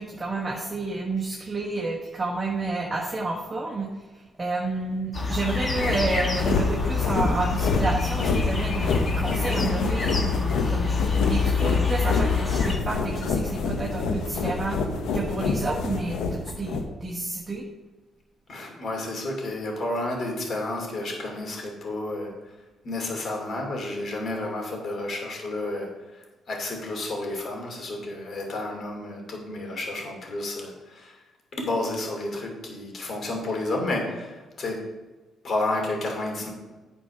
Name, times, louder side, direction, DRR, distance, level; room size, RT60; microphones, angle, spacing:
voice 1, 0.0-3.9 4.4-14.8 15.1-17.6, right 3 dB, 25° right, -3 dB, 1.4 m, -30 dB
sound 1, 5.1-12.8, left 5 dB, 30° left, 1.5 m, -26 dB
sound 2, 5.5-16.8, left 4 dB, 80° left, 1.0 m, -28 dB
voice 2, 18.5-22.3 22.8-25.9 26.1-31.2 31.5-34.9 35.4-36.5, left 2 dB, 50° left, 1 dB, 2.7 m, -31 dB
9.1 x 4.6 x 6.0 m, 1.2 s
cardioid pair, 90°, 0 cm